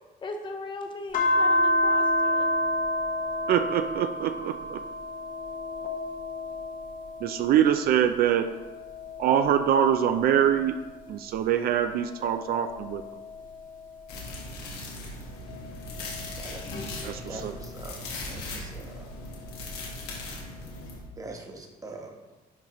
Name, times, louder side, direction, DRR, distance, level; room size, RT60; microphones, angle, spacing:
voice 1, 0.2-2.5, left 3 dB, 30° left, 4 dB, 0.7 m, -38 dB
sound 1, 1.1-7.9 8.3-11.2 11.8-14.6 15.3-17.8 19.1-20.2, left 1 dB, 55° left, 0.9 m, -31 dB
voice 2, 3.5-4.8 7.2-8.5 9.2-10.7 11.1-13.0 17.0-17.5, right 9 dB, 65° right, 8 dB, 0.4 m, -24 dB
sound 2, 14.1-21.0, left 2 dB, 85° left, 1.6 m, -38 dB
voice 3, 17.2-18.0 18.3-19.1 21.2-22.1, right 2 dB, 20° right, 1 dB, 1.1 m, -42 dB
10.5 x 4.0 x 3.0 m, 1.2 s
cardioid pair, 110°, 17 cm